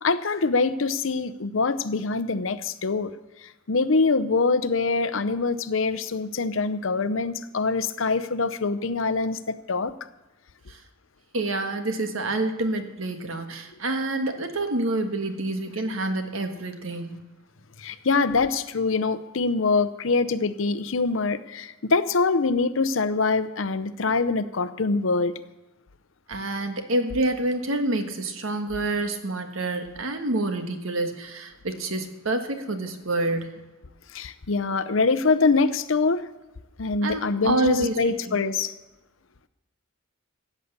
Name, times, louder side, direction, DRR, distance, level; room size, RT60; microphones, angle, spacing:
voice 1, 0.0-3.1 3.4-9.9 17.8-25.3 34.1-36.2 36.8-38.7, left 4 dB, 70° left, 14 dB, 0.7 m, -24 dB
voice 2, 11.3-17.2 26.3-33.5 37.0-38.4, right 2 dB, 85° right, 6 dB, 1.6 m, -27 dB
16.5 x 8.4 x 6.7 m, 1.0 s
head